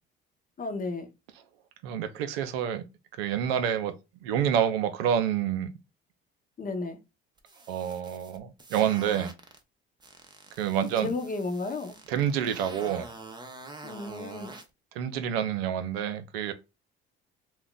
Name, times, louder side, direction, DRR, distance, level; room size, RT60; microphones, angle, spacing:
voice 1, 0.6-1.1 6.6-7.0 11.0-12.0 13.8-14.5, left 3 dB, 30° left, 0.8 m, -33 dB
voice 2, 1.8-2.8 3.2-3.9 4.2-5.7 7.7-9.3 10.6-11.1 12.1-13.1 15.0-16.5, right 9 dB, 80° right, 0.5 m, -28 dB
sound 1, 7.4-9.6 10.0-14.7, right 3 dB, 15° right, 0.7 m, -46 dB
2.4 x 2.1 x 3.7 m
hypercardioid pair, 65°, 29 cm